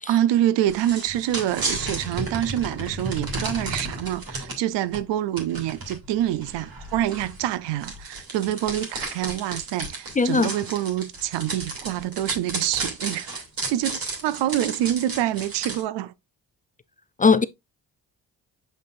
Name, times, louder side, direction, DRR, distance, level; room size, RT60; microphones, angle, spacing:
voice 1, 0.1-16.1, right 12 dB, 75° right, 0.6 m, -26 dB
sound 1, 0.7-4.6 4.9-5.0 5.4-15.8, right 2 dB, 55° right, 2.8 m, -33 dB
voice 2, 10.2-10.5 17.2-17.4, left 4 dB, 20° left, 0.4 m, -19 dB
7.4 x 5.3 x 2.5 m
supercardioid pair, 55°, 43 cm